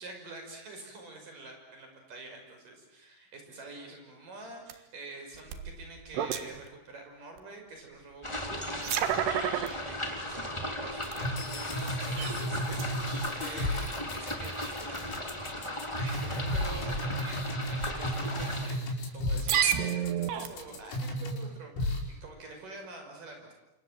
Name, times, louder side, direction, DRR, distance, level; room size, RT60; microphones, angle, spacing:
voice 1, 0.0-23.5, right 3 dB, 40° right, 3 dB, 6.9 m, -47 dB
sound 1, 4.7-4.8 5.4-6.7 7.4-7.5 8.5-9.7 10.3-10.4 11.1-11.2 11.7-12.4 12.7-12.9 13.9-14.0 14.2-14.5 15.3-15.5 16.3-16.6 17.1-17.2 18.2-18.3 19.3-20.8, right 9 dB, 65° right, 3.2 m, -30 dB
sound 2, 8.2-18.7, left 1 dB, 10° left, 1.8 m, -36 dB
sound 3, 11.0-21.4 21.8-22.0, left 1 dB, 80° left, 7.9 m, -34 dB
28.5 x 26.5 x 7.7 m, 0.92 s
omnidirectional pair, 6.0 m